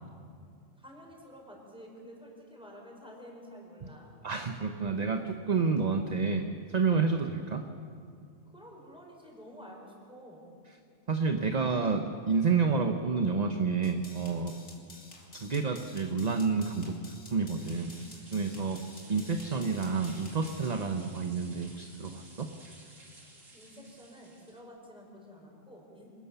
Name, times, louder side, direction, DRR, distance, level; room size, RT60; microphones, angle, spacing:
voice 1, 0.8-4.1 8.4-10.5 23.5-26.1, equal, 5° right, -1 dB, 5.0 m, -50 dB
voice 2, 4.2-7.6 11.1-14.5 15.4-17.0 17.3-17.9 18.3-18.8 19.1-22.5, right 4 dB, 35° right, 5 dB, 1.0 m, -29 dB
sound 1, 13.8-20.7, left 2 dB, 75° left, 3.3 m, -52 dB
sound 2, 17.6-24.6, right 2 dB, 80° right, 3.4 m, -54 dB
26.5 x 19.0 x 7.0 m, 2.3 s
omnidirectional pair, 1.3 m